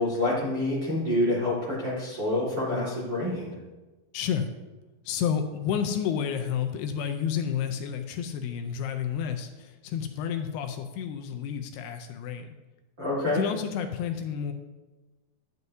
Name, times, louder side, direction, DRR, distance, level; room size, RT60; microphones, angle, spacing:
voice 1, 0.0-3.6 13.0-13.4, left 1 dB, 40° right, -7 dB, 1.8 m, -27 dB
voice 2, 4.1-4.5 5.1-12.5 13.3-14.5, left 8 dB, 80° left, 5 dB, 2.5 m, -30 dB
12.0 x 9.5 x 2.7 m, 1.2 s
omnidirectional pair, 4.8 m